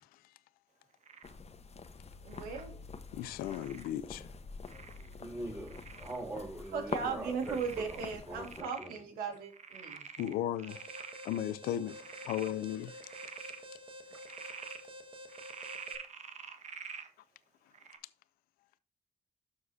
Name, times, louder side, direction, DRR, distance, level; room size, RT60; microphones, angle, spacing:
Frog, 1.0-1.4 2.3-2.7 3.4-3.9 4.7-5.1 5.7-6.2 6.7-6.8 7.4-9.0 9.3-11.4 11.9-12.5 12.9-13.6 14.1-14.8 15.3-17.1 17.7-18.0, right 5 dB, 50° right, 1.2 m, -47 dB
sound 1, 1.2-8.6, left 4 dB, 45° left, 1.1 m, -46 dB
voice 1, 2.2-2.8 6.7-10.0, right 5 dB, 90° right, 1.9 m, -37 dB
voice 2, 3.1-4.3 10.2-10.9 11.2-13.1, left 11 dB, 90° left, 0.4 m, -36 dB
voice 3, 5.2-9.1, right 1 dB, 20° right, 4.2 m, -43 dB
Alarm, 10.7-16.0, equal, 35° right, 1.6 m, -50 dB
13.0 x 4.8 x 2.7 m
supercardioid pair, 50°, 15 cm